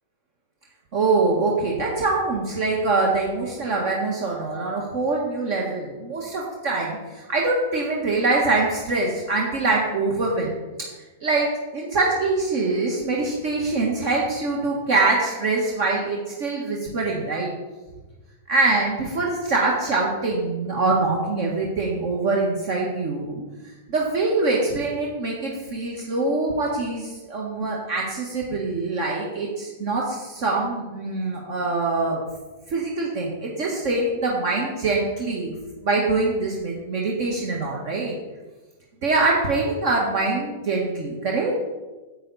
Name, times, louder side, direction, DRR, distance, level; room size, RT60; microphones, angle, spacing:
voice 1, 0.9-10.5 11.2-11.5 11.7-17.5 18.5-23.4 23.9-32.2 32.7-35.5 35.8-38.2 39.0-41.5, right 3 dB, 50° right, -2 dB, 1.6 m, -24 dB
9.0 x 8.1 x 4.2 m, 1.2 s
hypercardioid pair, 135°, 0 cm